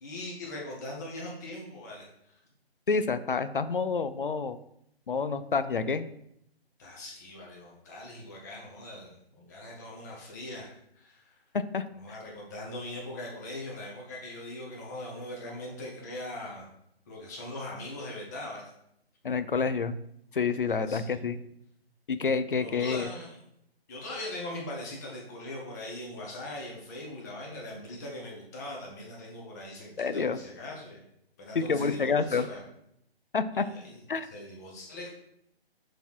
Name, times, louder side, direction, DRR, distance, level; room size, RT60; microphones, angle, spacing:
voice 1, 0.0-2.1 6.8-11.4 11.9-16.7 17.1-18.7 20.8-21.2 22.5-23.4 23.9-31.0 31.4-32.6 33.6-34.0 34.3-35.1, left 1 dB, 15° left, -2 dB, 1.1 m, -41 dB
voice 2, 2.9-4.6 5.1-6.1 11.5-12.2 19.2-19.9 20.3-21.4 22.1-23.1 30.0-30.4 31.5-32.5 33.3-33.6 34.1-34.3, left 5 dB, 55° left, 13 dB, 0.5 m, -28 dB
6.7 x 4.1 x 4.7 m, 0.76 s
figure-of-eight pair, 145°, 31 cm